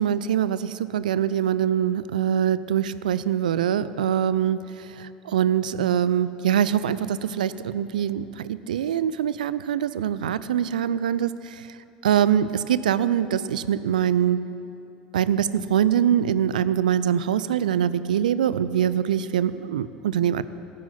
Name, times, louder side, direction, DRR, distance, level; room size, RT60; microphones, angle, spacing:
voice 1, 0.0-4.6 5.0-11.6 12.0-14.4 15.1-20.4, right 9 dB, 75° right, 15 dB, 0.4 m, -23 dB
11.0 x 7.7 x 10.0 m, 2.8 s
figure-of-eight pair, 75°, 4 cm